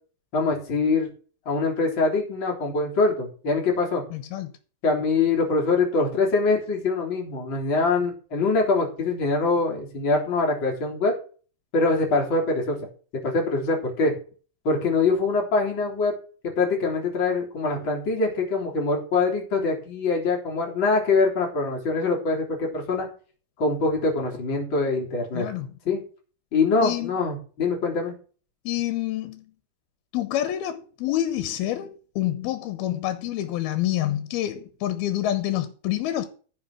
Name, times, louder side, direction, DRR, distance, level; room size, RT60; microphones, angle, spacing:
voice 1, 0.3-1.1 1.5-4.0 4.8-11.1 11.7-12.8 13.2-14.1 14.7-16.1 16.6-23.1 23.6-25.5 25.9-26.0 26.5-28.1, left 3 dB, 30° left, 3.7 m, -24 dB
voice 2, 4.1-4.5 25.3-25.7 26.8-27.1 28.7-29.4 30.1-36.3, left 13 dB, 85° left, 2.9 m, -27 dB
14.5 x 5.7 x 6.0 m
omnidirectional pair, 4.4 m